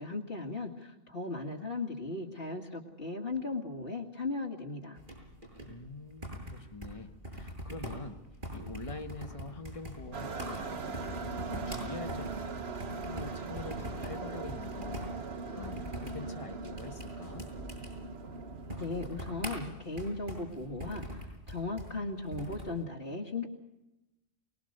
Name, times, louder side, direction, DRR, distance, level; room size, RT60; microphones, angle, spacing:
voice 1, 0.0-5.0 18.8-23.5, left 3 dB, 55° left, -2 dB, 2.2 m, -37 dB
sound 1, 4.9-22.8, equal, 45° right, 8.1 m, -44 dB
voice 2, 5.7-8.2 8.5-11.2 11.4-12.6 13.0-15.0 15.3-17.4, left 3 dB, 30° left, 5 dB, 1.6 m, -45 dB
sound 2, 10.1-19.6, right 4 dB, 60° right, 1.4 m, -40 dB
23.5 x 21.0 x 6.7 m, 0.96 s
omnidirectional pair, 1.2 m